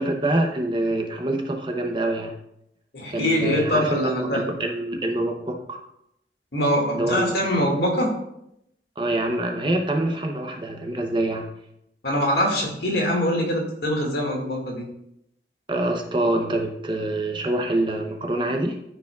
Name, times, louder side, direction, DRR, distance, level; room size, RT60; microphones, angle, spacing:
voice 1, 0.0-2.3 3.1-5.8 6.9-7.5 9.0-11.5 15.7-18.8, right 1 dB, 30° right, 3 dB, 0.7 m, -25 dB
voice 2, 2.9-4.4 6.5-8.1 12.0-14.8, equal, 60° left, -1 dB, 2.0 m, -23 dB
13.0 x 4.8 x 2.3 m, 0.80 s
head